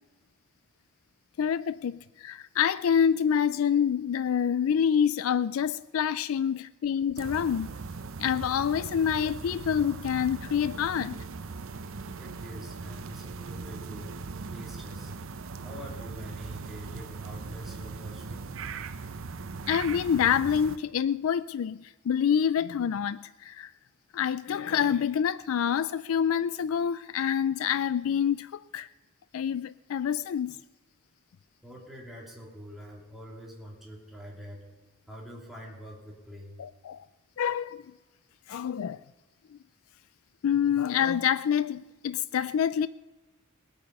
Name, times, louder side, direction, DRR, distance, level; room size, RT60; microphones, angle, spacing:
voice 1, 1.4-7.7 8.2-11.2 19.7-23.7 24.1-28.9 29.3-30.5 36.6-37.1 37.4-37.8 38.5-39.0 40.4-42.9, left 8 dB, 65° left, 0.4 m, -27 dB
sound 1, 7.2-20.8, right 4 dB, 65° right, 0.7 m, -39 dB
voice 2, 12.1-14.2 14.5-15.1 15.6-18.5 31.6-34.7 35.1-36.6, equal, ahead, 3.1 m, -45 dB
20.5 x 8.6 x 5.4 m
head